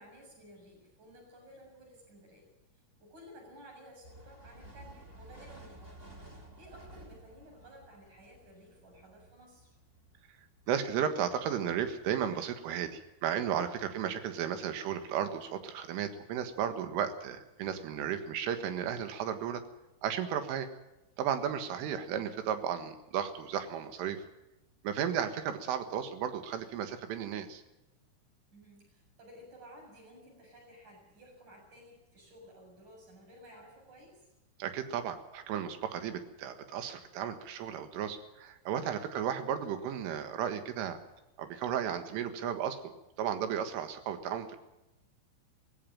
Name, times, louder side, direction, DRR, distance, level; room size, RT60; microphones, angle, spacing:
voice 1, 0.0-2.5 3.0-6.1 6.6-9.7 28.5-34.3, equal, 35° right, 1 dB, 8.4 m, -55 dB
sound 1, 4.0-12.0, right 1 dB, 20° right, 1.5 m, -54 dB
voice 2, 10.7-19.6 20.0-20.7 21.2-24.2 24.8-27.6 34.6-41.0 41.4-42.9 43.2-44.6, right 9 dB, 80° right, 9 dB, 4.1 m, -34 dB
18.0 x 16.5 x 8.9 m, 0.97 s
omnidirectional pair, 5.7 m